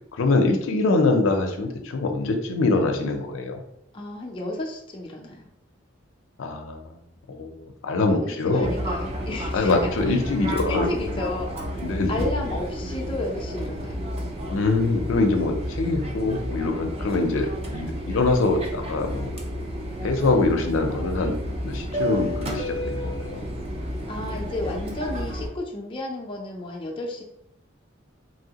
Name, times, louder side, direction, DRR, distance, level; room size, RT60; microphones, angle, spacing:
voice 1, 0.2-3.6 6.4-6.8 7.3-7.6 7.8-8.7 9.5-10.9 11.8-12.1 14.5-19.3 20.0-21.3 21.6-23.4, left 3 dB, 80° left, 4 dB, 0.5 m, -24 dB
voice 2, 3.9-5.5 8.1-10.2 10.7-11.8 12.1-14.1 24.1-27.2, left 2 dB, 25° left, -1 dB, 0.4 m, -32 dB
Fixed-wing aircraft airplane, 8.6-25.5, equal, 30° right, 0.4 m, -31 dB
3.0 x 2.7 x 2.8 m, 0.77 s
head